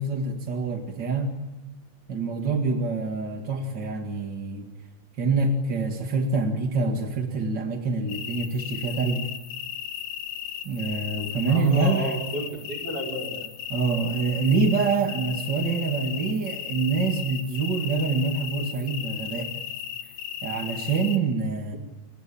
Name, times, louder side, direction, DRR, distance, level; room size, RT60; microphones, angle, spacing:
voice 1, 0.0-1.4 2.1-4.7 5.2-9.3 10.6-12.1 13.7-19.6 20.4-21.8, right 3 dB, 45° right, 4 dB, 1.5 m, -26 dB
sound 1, 8.1-21.2, left 10 dB, 70° left, 3.3 m, -35 dB
voice 2, 11.5-13.4, right 1 dB, 25° right, 0 dB, 5.8 m, -32 dB
29.5 x 22.0 x 8.7 m, 1.1 s
omnidirectional pair, 5.1 m